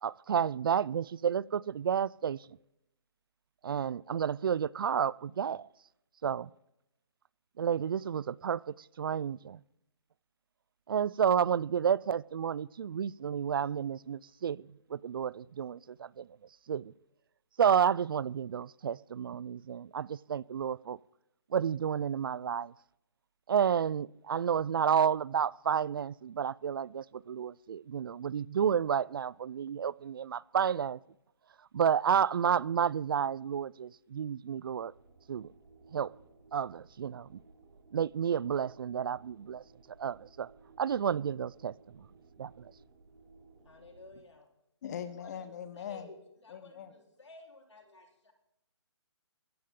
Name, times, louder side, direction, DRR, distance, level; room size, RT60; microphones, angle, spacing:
voice 1, 0.0-2.4 3.6-5.7 6.2-6.5 7.6-9.6 10.9-14.6 14.9-16.3 16.7-16.9 17.6-21.0 21.5-22.7 23.5-31.0 31.7-34.9 35.3-35.5 35.9-36.1 36.5-37.3 37.9-39.6 40.0-40.5 40.8-41.7 42.4-42.7, right 8 dB, 50° right, 0.4 m, -31 dB
sound 1, 34.8-44.1, right 3 dB, 70° right, 4.6 m, -59 dB
voice 2, 43.6-44.5 45.2-48.3, left 3 dB, 90° left, 3.8 m, -54 dB
voice 3, 44.8-46.1 46.5-46.9, left 8 dB, 40° left, 1.1 m, -41 dB
15.5 x 14.5 x 3.7 m
hypercardioid pair, 155°, 15 cm